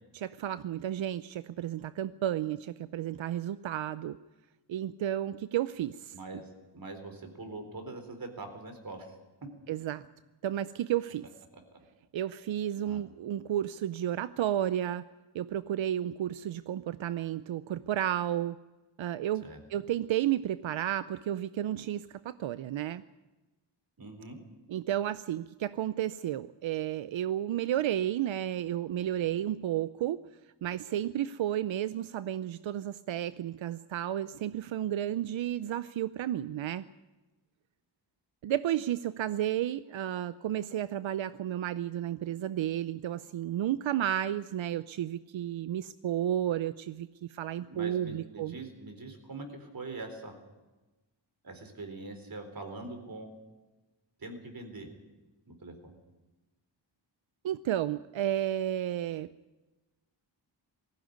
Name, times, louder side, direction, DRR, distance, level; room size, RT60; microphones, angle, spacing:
voice 1, 0.1-4.2 4.7-6.1 9.7-10.0 10.4-11.3 12.1-15.0 15.3-18.6 19.0-23.0 24.7-30.2 30.6-36.8 38.4-48.5 57.4-59.3, right 11 dB, 90° right, 14 dB, 0.6 m, -32 dB
voice 2, 6.1-9.1 12.8-13.0 19.4-19.6 24.0-24.4 47.7-50.4 51.4-53.3 54.2-54.9 55.5-55.9, right 2 dB, 50° right, 6 dB, 4.0 m, -43 dB
18.5 x 15.5 x 9.3 m, 1.1 s
wide cardioid pair, 95°, 45 cm